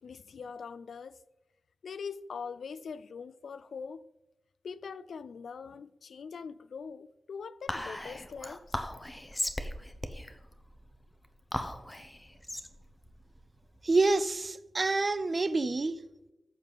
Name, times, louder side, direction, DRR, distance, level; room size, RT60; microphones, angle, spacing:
voice 1, 0.0-1.2 1.8-4.1 4.6-8.6, left 5 dB, 65° left, 0.4 m, -42 dB
Whispering, 7.7-14.3, left 1 dB, 10° left, 0.7 m, -38 dB
voice 2, 13.8-16.0, right 3 dB, 30° right, 0.5 m, -27 dB
14.5 x 7.3 x 4.1 m
wide cardioid pair, 170°, 0 cm